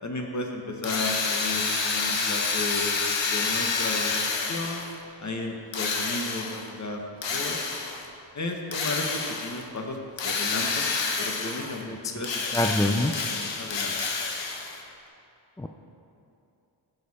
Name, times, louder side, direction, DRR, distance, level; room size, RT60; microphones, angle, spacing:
voice 1, 0.0-3.0 3.3-4.8 5.2-7.0 7.3-7.6 8.3-10.9 11.2-11.8 12.1-13.1 13.4-14.0, left 2 dB, 40° left, 2 dB, 1.4 m, -34 dB
Drill, 0.8-5.0 5.7-6.7 7.2-8.1 8.7-9.6 10.2-11.8 12.2-14.8, left 4 dB, 75° left, 1.1 m, -28 dB
voice 2, 12.5-13.1 15.6-15.7, left 1 dB, 10° left, 4 dB, 0.4 m, -24 dB
14.5 x 6.7 x 4.3 m, 2.7 s
wide cardioid pair, 90°, 44 cm